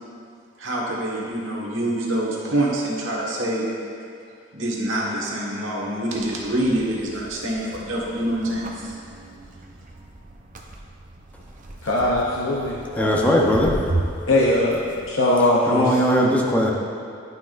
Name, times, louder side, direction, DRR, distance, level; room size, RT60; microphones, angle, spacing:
voice 1, 0.6-3.7 4.5-8.9, right 1 dB, 80° right, -4 dB, 1.4 m, -26 dB
sound 1, 6.1-15.1, right 2 dB, 40° right, 0.7 m, -35 dB
voice 2, 11.8-13.6 14.3-16.0, left 1 dB, 85° left, -4 dB, 0.7 m, -21 dB
voice 3, 13.0-13.7 15.7-16.7, equal, 10° left, -2 dB, 0.8 m, -19 dB
11.0 x 5.9 x 2.5 m, 2.4 s
head